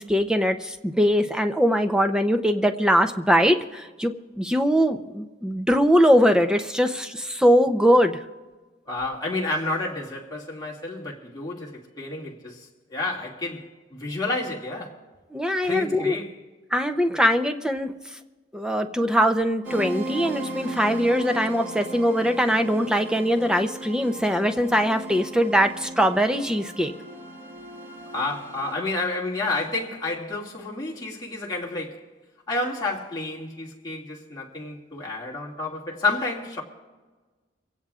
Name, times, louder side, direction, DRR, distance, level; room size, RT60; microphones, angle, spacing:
voice 1, 0.0-8.2 15.3-16.2 16.7-17.9 18.5-26.9, equal, 5° right, 0.6 m, -21 dB
voice 2, 8.9-15.0 15.6-16.4 28.1-32.0 32.5-36.6, left 2 dB, 20° left, 2.3 m, -30 dB
sound 1, 19.6-28.7, right 1 dB, 90° right, 2.5 m, -37 dB
24.0 x 16.5 x 2.4 m
head